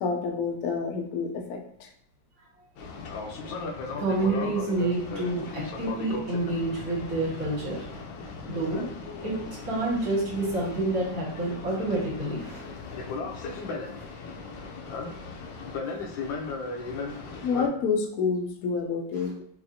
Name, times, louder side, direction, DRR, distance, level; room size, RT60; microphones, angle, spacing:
voice 1, 0.0-1.9 17.4-19.4, left 5 dB, 70° left, 2 dB, 0.8 m, -28 dB
Boat Water vehicle, 2.8-17.7, left 3 dB, 85° left, 1.4 m, -37 dB
voice 2, 4.0-7.8 8.5-8.9 9.2-9.3 9.6-12.6, right 2 dB, 55° right, -4 dB, 1.7 m, -28 dB
4.1 x 2.5 x 2.6 m, 0.69 s
omnidirectional pair, 2.1 m